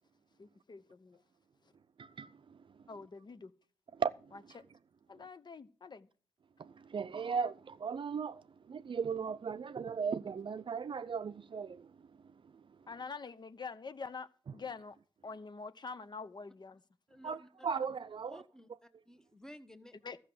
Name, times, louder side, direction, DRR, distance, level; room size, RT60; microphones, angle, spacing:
voice 1, 0.4-1.2 2.9-3.5 4.5-4.6 5.1-6.1 12.9-14.9 15.2-16.8 20.0-20.2, left 4 dB, 45° left, 0.8 m, -45 dB
voice 2, 2.0-2.6 3.9-4.3 6.6-11.9 17.2-18.4, right 6 dB, 55° right, 0.5 m, -37 dB
voice 3, 17.1-17.9 18.2-20.0, equal, 5° left, 1.2 m, -54 dB
13.5 x 6.3 x 7.7 m
cardioid pair, 65°, 10 cm